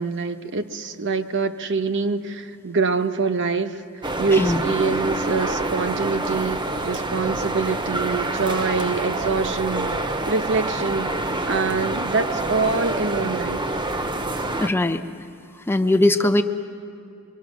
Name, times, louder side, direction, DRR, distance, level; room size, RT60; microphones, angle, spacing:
voice 1, 0.0-3.8 4.2-13.6, right 4 dB, 55° right, 8 dB, 1.0 m, -25 dB
sound 1, 4.0-14.7, right 2 dB, 20° right, 0.8 m, -26 dB
voice 2, 14.5-15.0 15.7-16.4, left 1 dB, 10° left, 8 dB, 0.6 m, -20 dB
27.5 x 24.0 x 6.3 m, 2.6 s
head